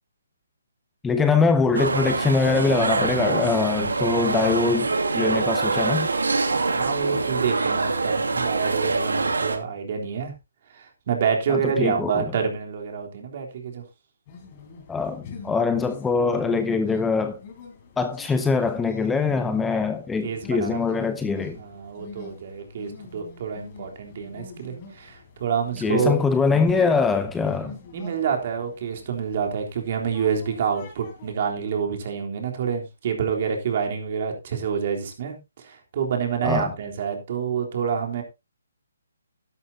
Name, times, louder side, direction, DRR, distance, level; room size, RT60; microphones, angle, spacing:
voice 1, 1.0-4.9 5.1-6.1 11.5-12.2 14.9-17.4 18.0-21.6 25.8-27.8 36.4-36.7, left 4 dB, 5° left, 0.7 m, -23 dB
sound 1, 1.7-9.6, right 3 dB, 90° right, 2.3 m, -24 dB
voice 2, 6.7-10.3 10.7-13.8 20.2-21.0 21.6-26.2 27.9-38.2, right 7 dB, 40° right, 3.5 m, -27 dB
sound 2, 14.3-31.5, left 5 dB, 30° left, 4.4 m, -43 dB
12.5 x 11.5 x 2.8 m
hypercardioid pair, 160°, 0 cm